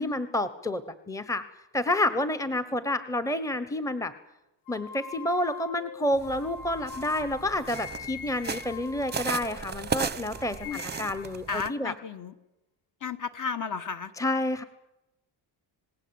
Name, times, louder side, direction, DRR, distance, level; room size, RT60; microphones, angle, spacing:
voice 1, 0.0-1.4 1.7-4.1 4.7-11.9 14.2-14.6, left 1 dB, 5° left, 11 dB, 1.1 m, -29 dB
sound 1, 4.7-9.9 10.3-11.3, left 6 dB, 85° left, 4.6 m, -43 dB
sound 2, 6.1-11.7, right 5 dB, 20° right, 0.8 m, -36 dB
voice 2, 11.5-12.3 13.0-14.1, left 6 dB, 40° left, 11 dB, 1.7 m, -33 dB
27.5 x 19.0 x 8.8 m, 0.96 s
cardioid pair, 155°, 48 cm